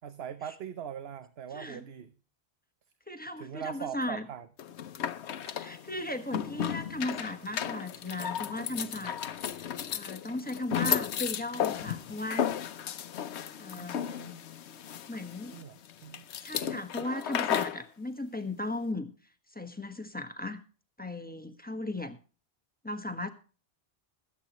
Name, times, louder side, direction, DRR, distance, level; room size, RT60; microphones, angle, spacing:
voice 1, 0.0-2.1 3.4-4.5 5.3-5.6 13.8-13.9 15.5-16.2, right 9 dB, 70° right, 11 dB, 1.0 m, -41 dB
voice 2, 1.5-1.8 3.1-4.3 5.6-9.6 9.9-12.5 13.6-14.4 15.1-15.5 16.4-19.1 19.5-20.6 21.0-22.2 22.8-23.3, left 1 dB, 10° left, 7 dB, 1.2 m, -37 dB
sound 1, 4.6-17.8, left 9 dB, 90° left, 1.0 m, -34 dB
21.5 x 8.5 x 3.0 m, 0.37 s
omnidirectional pair, 1.1 m